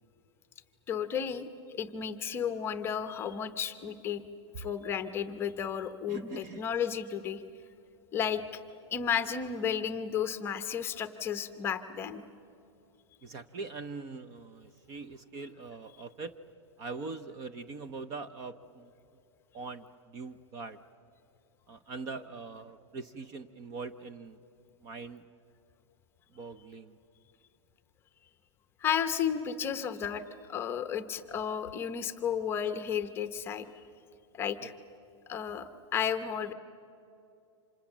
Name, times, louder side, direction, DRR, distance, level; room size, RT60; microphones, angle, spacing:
voice 1, 0.9-4.2 4.6-7.4 8.1-8.4 8.9-12.2 28.8-30.2 30.5-33.7 34.3-34.7 35.3-36.5, left 8 dB, 15° left, 10 dB, 0.8 m, -33 dB
voice 2, 6.1-6.6 13.2-16.3 16.8-18.9 19.5-20.8 21.7-24.4 24.8-25.2 26.3-27.0 34.6-34.7, right 4 dB, 25° right, 12 dB, 0.7 m, -42 dB
29.5 x 26.5 x 7.3 m, 2.7 s
supercardioid pair, 165°, 16 cm